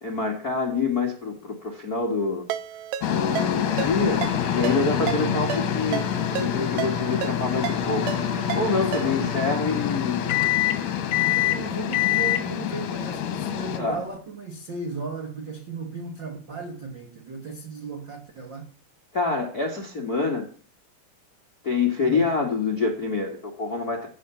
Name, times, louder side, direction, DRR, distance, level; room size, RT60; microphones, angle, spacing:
voice 1, 0.0-2.4 3.1-4.2 4.5-8.1 8.5-10.2 13.8-14.0 19.1-20.5 21.6-24.1, left 4 dB, 45° left, 1.2 m, -26 dB
Ringtone, 2.5-9.4, right 11 dB, 90° right, 3.0 m, -34 dB
sound 1, 3.0-13.8, left 9 dB, 65° left, 2.4 m, -28 dB
sound 2, 3.8-14.2, left 12 dB, 80° left, 1.6 m, -29 dB
voice 2, 5.0-5.5 8.9-9.3 11.1-18.7 22.0-22.3, right 4 dB, 60° right, 1.1 m, -36 dB
16.0 x 6.7 x 7.0 m
omnidirectional pair, 4.7 m